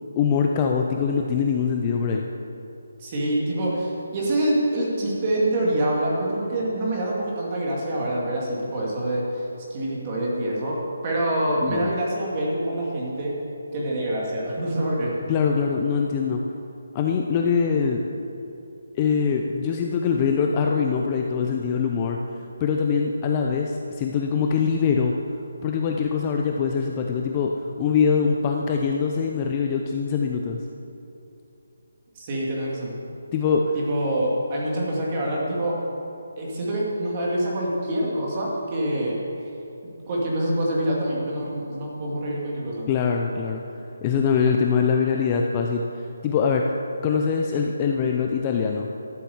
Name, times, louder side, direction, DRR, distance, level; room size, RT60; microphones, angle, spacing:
voice 1, 0.2-2.3 11.6-11.9 15.3-16.4 16.9-18.0 19.0-22.2 22.6-25.1 25.6-27.5 27.8-30.6 33.3-33.7 42.9-43.6 44.0-45.8 46.2-46.7 47.0-48.9, left 6 dB, 15° left, 1 dB, 0.5 m, -23 dB
voice 2, 3.0-13.4 13.7-15.2 32.1-33.0 33.7-35.8 36.4-39.5 39.8-42.9, right 1 dB, 20° right, -4 dB, 2.2 m, -26 dB
13.0 x 7.5 x 7.2 m, 2.8 s
hypercardioid pair, 175°, 0 cm